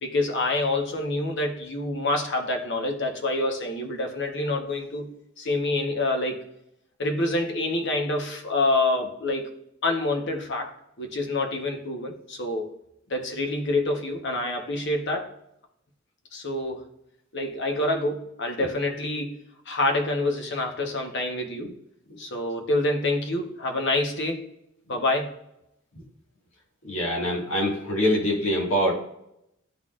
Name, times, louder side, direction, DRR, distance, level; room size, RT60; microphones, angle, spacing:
voice 1, 0.0-5.1 5.4-6.4 7.0-9.5 9.8-12.7 13.1-15.3 16.3-16.8 17.3-21.7 22.2-24.4 24.9-25.3, left 2 dB, 60° left, 2 dB, 1.1 m, -27 dB
voice 2, 26.8-28.9, equal, 80° left, -2 dB, 1.9 m, -24 dB
11.5 x 4.0 x 2.5 m, 0.79 s
head